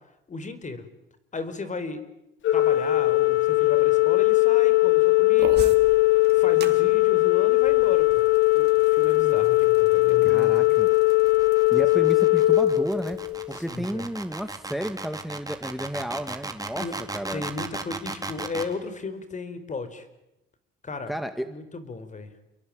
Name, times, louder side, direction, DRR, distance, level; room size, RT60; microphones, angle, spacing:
voice 1, 0.3-0.8 1.3-2.0 2.5-6.0 6.3-8.1 8.5-11.0 13.5-14.1 16.8-16.9 17.3-20.1 20.8-21.1 21.5-22.3, left 3 dB, 40° left, 12 dB, 4.7 m, -35 dB
Organ, 2.4-13.5, left 20 dB, 75° left, 1.9 m, -20 dB
sound 1, 5.4-13.8, right 7 dB, 55° right, 3.6 m, -43 dB
sound 2, 9.5-18.7, right 3 dB, 20° right, 3.9 m, -36 dB
voice 2, 10.2-10.9 11.7-13.2 13.5-16.9 17.1-17.4 21.1-21.5, equal, ahead, 9 dB, 1.9 m, -32 dB
29.5 x 22.5 x 8.9 m, 0.88 s
cardioid pair, 90°, 20 cm